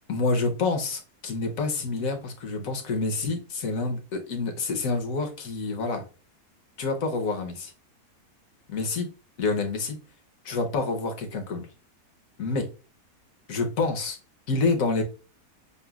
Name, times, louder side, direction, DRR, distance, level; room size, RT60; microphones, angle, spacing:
voice 1, 0.1-6.1 6.8-7.7 8.7-9.1 9.4-10.0 10.4-11.7 12.4-12.7 13.5-14.2 14.5-15.0, left 3 dB, 65° left, 4 dB, 1.3 m, -27 dB
6.8 x 2.3 x 2.3 m, 0.34 s
omnidirectional pair, 1.6 m